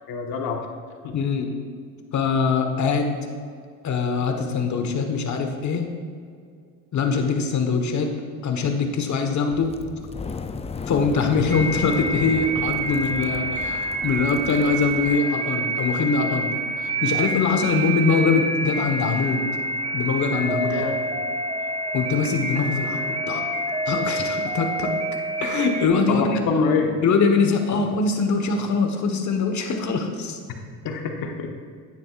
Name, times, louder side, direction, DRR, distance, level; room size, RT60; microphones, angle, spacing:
voice 1, 0.1-0.6 1.0-1.1 20.7-21.2 26.1-26.9 30.8-31.6, left 5 dB, 65° left, 3 dB, 1.4 m, -25 dB
voice 2, 1.1-1.5 2.1-3.1 3.8-5.9 6.9-8.1 8.4-9.7 10.9-16.5 16.8-19.5 19.9-20.8 21.9-23.4 23.9-24.9 25.4-26.4 27.0-30.4, left 4 dB, 50° left, 5 dB, 1.4 m, -23 dB
sound 1, 9.5-15.2, left 4 dB, 15° left, 0.4 m, -35 dB
sound 2, 11.5-25.9, right 2 dB, 15° right, 0.7 m, -27 dB
10.5 x 9.4 x 2.5 m, 2.2 s
supercardioid pair, 90°, 38 cm